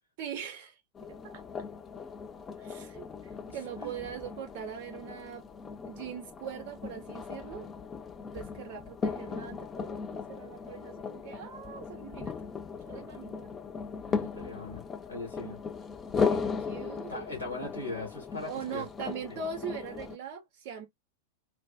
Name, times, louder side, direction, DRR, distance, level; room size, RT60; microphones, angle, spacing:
voice 1, 0.2-0.8 1.2-1.4 2.6-5.4 5.9-7.7 8.3-12.3 12.8-13.5 16.2-17.3 18.4-20.9, right 7 dB, 45° right, 0.5 m, -41 dB
sound 1, 0.9-20.2, left 5 dB, 20° left, 0.3 m, -37 dB
voice 2, 3.5-3.9 14.1-15.6 17.1-18.8 19.2-19.4, left 2 dB, 85° left, 1.5 m, -40 dB
3.3 x 2.1 x 2.4 m
figure-of-eight pair, 90°, 0 cm